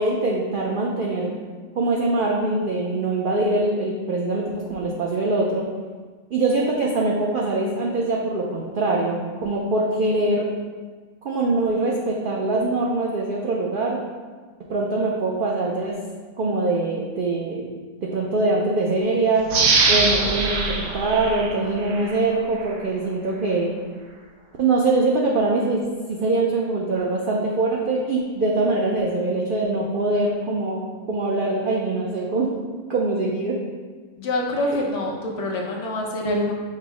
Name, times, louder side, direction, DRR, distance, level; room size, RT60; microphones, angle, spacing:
voice 1, 0.0-1.3 1.8-5.6 6.3-10.5 11.2-14.0 14.7-16.0 16.4-17.7 18.0-19.5 19.9-23.7 24.6-25.8 26.1-32.5 32.9-33.6, right 2 dB, 85° right, -3 dB, 0.4 m, -23 dB
sound 1, 19.5-22.2 22.6-22.7, right 3 dB, 65° right, 0.9 m, -22 dB
voice 2, 34.2-36.5, left 1 dB, 60° left, -1 dB, 0.9 m, -25 dB
5.4 x 2.1 x 4.6 m, 1.4 s
omnidirectional pair, 1.5 m